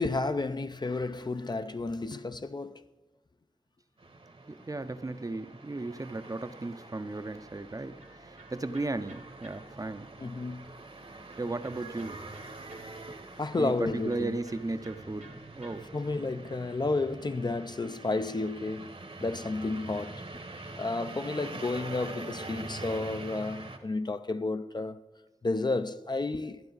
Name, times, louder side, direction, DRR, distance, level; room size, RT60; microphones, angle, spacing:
voice 1, 0.0-2.8 10.2-10.7 13.4-14.4 15.9-20.2 20.8-25.0 25.4-26.6, left 3 dB, 35° left, 0.5 m, -32 dB
sound 1, 4.0-23.8, right 2 dB, 50° right, 1.1 m, -45 dB
voice 2, 4.5-10.1 11.4-12.2 13.6-15.9, right 2 dB, 30° right, 0.6 m, -35 dB
Electric guitar, 7.3-16.3, right 2 dB, 90° right, 1.9 m, -57 dB
12.5 x 11.0 x 4.0 m
wide cardioid pair, 55°, 12 cm